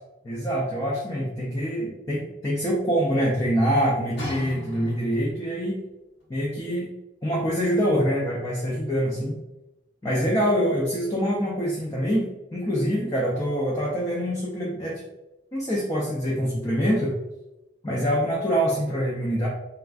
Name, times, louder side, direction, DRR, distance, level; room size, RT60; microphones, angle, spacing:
voice 1, 0.2-5.8 6.3-6.9 7.2-9.4 10.0-12.3 12.5-15.0 15.5-17.2 17.8-19.5, equal, 20° left, -4 dB, 0.4 m, -25 dB
sound 1, 4.2-5.4 6.2-6.3, left 1 dB, 60° left, 1.3 m, -37 dB
3.3 x 2.4 x 2.3 m, 0.97 s
head